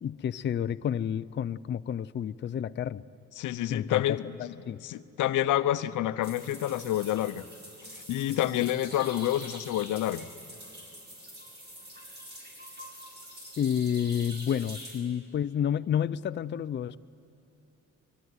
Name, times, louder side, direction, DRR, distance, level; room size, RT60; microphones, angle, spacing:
voice 1, 0.0-3.0 3.7-4.8 13.6-17.0, left 9 dB, 40° left, 13 dB, 0.5 m, -30 dB
voice 2, 3.4-4.5 4.8-7.5 7.9-10.3, left 13 dB, 85° left, 12 dB, 0.9 m, -28 dB
sound 1, 6.2-15.0, equal, 35° right, 7.3 m, -45 dB
23.5 x 23.5 x 9.7 m, 2.9 s
cardioid pair, 90°, 30 cm